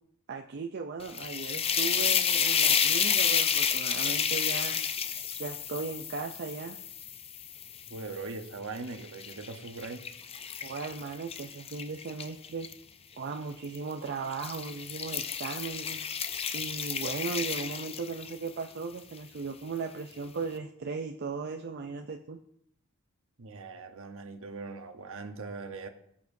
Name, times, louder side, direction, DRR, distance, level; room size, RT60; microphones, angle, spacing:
voice 1, 0.3-4.8 5.4-6.8 10.6-12.7 13.2-16.0 16.5-22.4, right 4 dB, 50° right, 4 dB, 0.5 m, -37 dB
sound 1, 1.0-8.2 8.8-12.7 13.6-13.9 14.3-18.5, left 7 dB, 30° left, 0.5 m, -30 dB
voice 2, 7.9-10.0 23.4-25.9, right 3 dB, 65° right, 7 dB, 1.0 m, -40 dB
17.5 x 7.1 x 2.7 m, 0.72 s
head